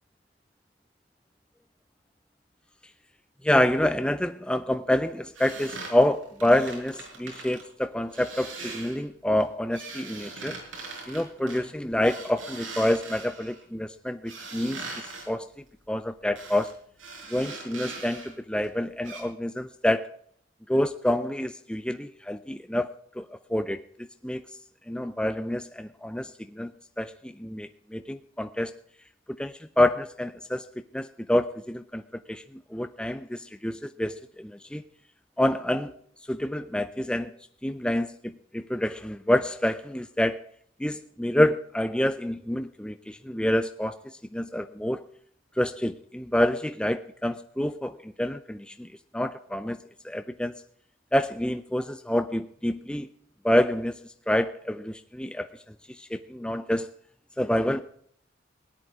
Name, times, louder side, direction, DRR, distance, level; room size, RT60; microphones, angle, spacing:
voice 1, 3.4-10.6 11.1-15.5 15.9-16.7 17.3-20.1 20.7-22.9 23.2-23.8 24.2-24.5 24.9-26.7 27.0-28.7 29.4-32.0 32.3-32.4 32.7-34.8 35.4-35.9 36.3-37.3 37.6-40.4 40.8-44.0 44.3-45.0 45.6-48.9 49.1-49.8 50.0-50.5 51.1-53.1 53.4-54.0 54.3-55.5 56.0-56.9 57.4-57.8, left 1 dB, 5° left, 9 dB, 0.5 m, -27 dB
sound 1, 5.3-7.6 8.1-9.0 9.4-13.6 14.3-15.3 16.4-16.7 17.0-18.3 18.6-18.7 19.0-19.2, right 3 dB, 85° right, 5.5 m, -41 dB
17.5 x 10.5 x 4.7 m, 0.62 s
head